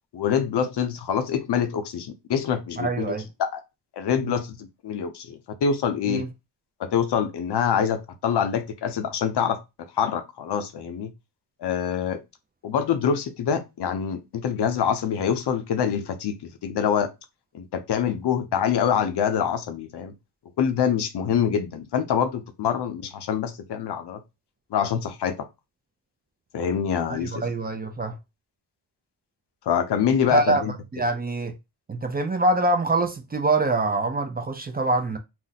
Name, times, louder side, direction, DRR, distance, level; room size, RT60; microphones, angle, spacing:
voice 1, 0.1-3.1 3.4-3.6 4.0-6.3 6.8-9.6 10.0-11.1 11.6-12.2 12.6-17.1 17.5-20.1 20.6-24.2 24.7-25.5 26.5-27.4 29.7-30.7, left 7 dB, 65° left, 0.6 m, -25 dB
voice 2, 2.8-3.3 4.2-4.3 6.1-6.3 27.1-28.2 30.3-30.7 30.9-31.5 31.9-35.2, right 2 dB, 25° right, 0.3 m, -24 dB
2.5 x 2.0 x 3.9 m
wide cardioid pair, 110°, 43 cm